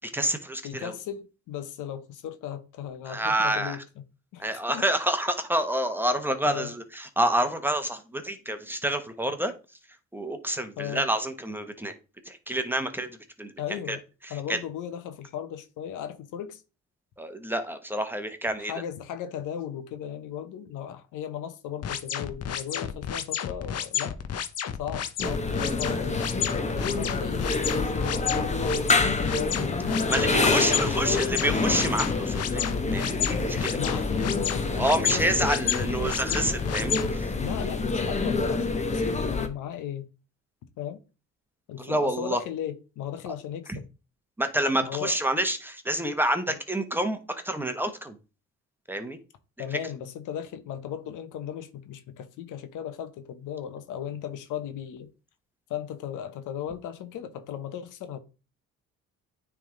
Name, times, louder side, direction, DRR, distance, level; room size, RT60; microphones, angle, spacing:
voice 1, 0.0-0.9 3.0-3.8 4.4-9.5 10.1-11.9 12.2-14.0 14.2-14.6 17.2-18.7 30.1-32.6 32.9-33.8 34.7-37.3 41.8-42.4 43.7-43.8 44.4-48.2 48.9-49.2 49.7-49.8, right 1 dB, 5° right, 1.1 m, -28 dB
voice 2, 0.6-3.8 4.3-4.8 6.4-6.7 10.8-11.0 13.6-14.0 14.3-16.6 18.6-24.2 24.8-26.2 26.7-29.6 29.9-31.4 33.8-35.5 35.8-36.1 37.4-40.1 40.8-41.0 41.7-43.8 44.8-45.2 46.5-46.6 49.6-55.1 55.7-58.2, left 9 dB, 85° left, 1.0 m, -36 dB
sound 1, 21.8-37.1, left 9 dB, 55° left, 0.8 m, -31 dB
sound 2, 25.2-39.5, left 3 dB, 25° left, 1.0 m, -27 dB
9.1 x 3.6 x 3.8 m
cardioid pair, 90°, 30 cm